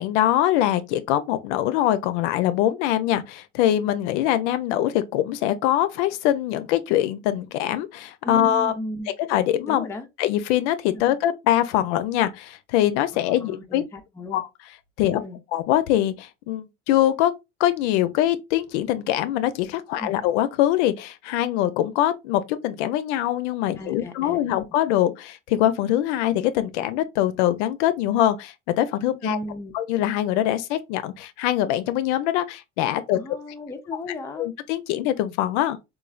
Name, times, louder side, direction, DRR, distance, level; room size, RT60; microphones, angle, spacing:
voice 1, 0.0-8.7 9.3-9.8 10.2-13.8 14.3-14.5 15.0-15.2 15.5-17.3 17.6-29.4 29.7-33.2 34.4-35.8, left 12 dB, 70° left, 0.5 m, -23 dB
voice 2, 8.2-9.1 9.7-10.1 10.9-11.0 13.1-14.4 15.1-15.4 20.0-20.1 23.8-24.4 29.2-29.7 33.1-34.5, left 1 dB, 10° left, 0.4 m, -35 dB
3.1 x 2.3 x 2.2 m
hypercardioid pair, 85°, 36 cm